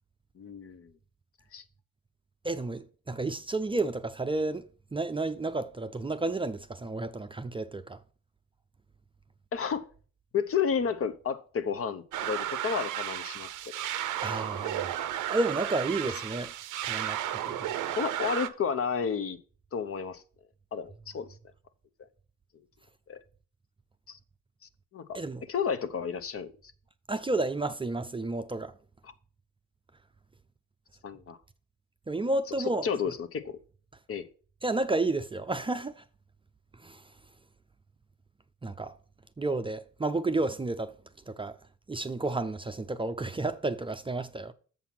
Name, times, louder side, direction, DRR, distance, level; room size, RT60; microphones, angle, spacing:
voice 1, 0.4-0.9 1.5-1.6 9.5-9.9 10.3-13.8 17.9-19.4 19.7-20.2 20.7-21.3 23.1-23.2 24.1-24.2 24.9-25.2 25.5-26.5 31.0-31.4 32.8-33.6 34.1-34.3, left 6 dB, 50° left, 0.8 m, -31 dB
voice 2, 2.4-8.0 14.2-14.9 15.3-16.5 16.8-17.7 25.1-25.4 27.1-28.7 32.1-32.9 34.6-36.0 36.8-37.1 38.6-39.0 39.4-41.0 41.3-41.6 41.9-44.5, right 2 dB, 15° right, 0.5 m, -31 dB
sound 1, 12.1-18.5, right 12 dB, 85° right, 0.7 m, -33 dB
7.2 x 5.8 x 5.8 m
cardioid pair, 90°, 30 cm